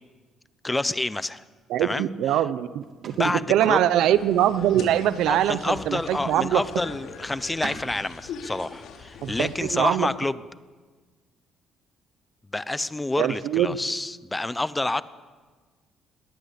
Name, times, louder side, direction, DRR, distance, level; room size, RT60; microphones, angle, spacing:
voice 1, 0.6-1.4 1.8-2.4 3.1-3.8 5.3-10.4 12.5-15.0, left 2 dB, 10° left, 16 dB, 0.8 m, -28 dB
voice 2, 1.7-6.6 9.2-10.1 13.2-13.7, right 11 dB, 80° right, 14 dB, 0.8 m, -23 dB
sound 1, 1.8-11.0, right 5 dB, 45° right, 3.0 m, -48 dB
sound 2, 4.1-9.7, left 5 dB, 70° left, 3.2 m, -42 dB
21.0 x 18.5 x 8.4 m, 1.4 s
cardioid pair, 120°, 0 cm